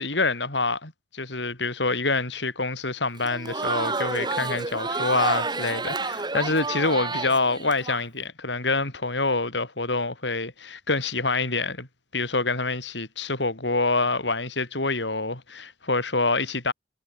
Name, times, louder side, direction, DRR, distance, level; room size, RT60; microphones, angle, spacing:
voice 1, 0.0-11.9 12.1-16.7, left 3 dB, 80° left, 5.9 m, -26 dB
Crowd, 3.2-8.0, right 3 dB, 25° right, 3.4 m, -29 dB
head